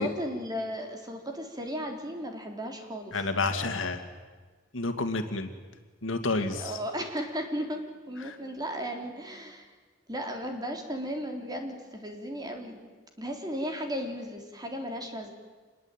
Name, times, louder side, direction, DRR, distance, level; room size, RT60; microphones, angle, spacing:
voice 1, 0.0-3.2 6.6-7.8 8.1-9.7 10.1-12.8 13.2-15.3, equal, 20° right, 3 dB, 3.5 m, -35 dB
voice 2, 3.1-4.0 4.7-5.5 6.0-6.8 8.2-8.4, left 3 dB, 75° left, 7 dB, 2.4 m, -29 dB
26.5 x 21.5 x 9.1 m, 1.4 s
head